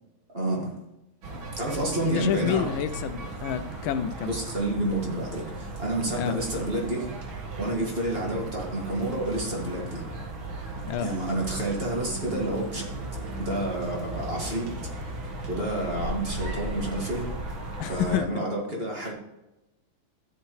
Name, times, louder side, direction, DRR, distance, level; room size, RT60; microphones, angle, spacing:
voice 1, 0.3-0.7 1.6-2.7 4.2-7.1 7.5-10.0 11.0-12.9 13.4-14.7 15.4-17.3 17.9-19.1, right 1 dB, 30° right, -2 dB, 2.2 m, -29 dB
sound 1, 1.2-18.2, right 2 dB, 85° right, 2.4 m, -36 dB
voice 2, 2.0-4.3 6.1-6.4 10.9-11.1 17.8-18.4, left 9 dB, 85° left, 12 dB, 1.4 m, -29 dB
13.0 x 7.8 x 3.2 m, 0.99 s
omnidirectional pair, 2.2 m